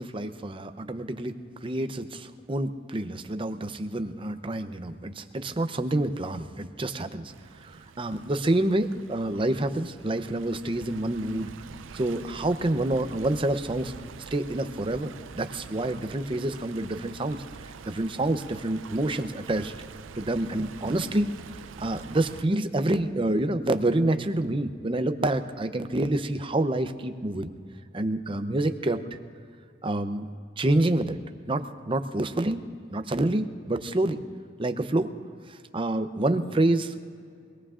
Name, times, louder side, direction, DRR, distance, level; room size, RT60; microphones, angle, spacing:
voice 1, 0.0-7.3 7.6-11.5 11.9-13.9 14.3-19.7 20.1-21.3 21.8-27.5 27.9-29.0 29.8-30.3 30.6-31.2 31.5-32.6 32.9-34.2 34.6-35.1 35.5-37.0, right 1 dB, 25° right, 9 dB, 0.6 m, -27 dB
Stream, 7.3-22.4, right 5 dB, 80° right, 0.5 m, -45 dB
25.0 x 18.5 x 2.5 m, 2.3 s
head